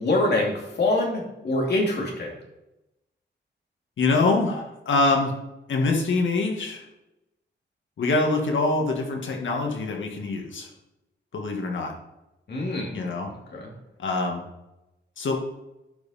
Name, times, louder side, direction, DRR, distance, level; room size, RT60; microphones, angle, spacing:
voice 1, 0.0-2.3 12.5-12.9 13.5-13.7, left 2 dB, 60° left, -1 dB, 2.8 m, -25 dB
voice 2, 4.0-5.3 5.7-6.8 8.0-10.7 11.3-11.9 12.9-13.3 14.0-14.4 15.2-15.4, left 3 dB, 85° left, 1 dB, 2.0 m, -24 dB
11.5 x 5.7 x 4.3 m, 0.95 s
wide cardioid pair, 145°, 19 cm